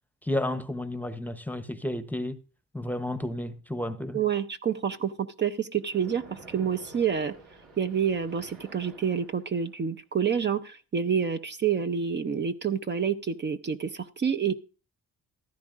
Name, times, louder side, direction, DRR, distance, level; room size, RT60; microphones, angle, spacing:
voice 1, 0.2-2.4 2.7-4.2, left 1 dB, 5° left, 0.8 m, -32 dB
voice 2, 4.1-7.3 7.8-14.5, right 7 dB, 35° right, 0.7 m, -28 dB
Splash splatter, 5.8-9.8, right 3 dB, 75° right, 3.3 m, -50 dB
14.5 x 12.5 x 2.5 m
cardioid pair, 90°, 30 cm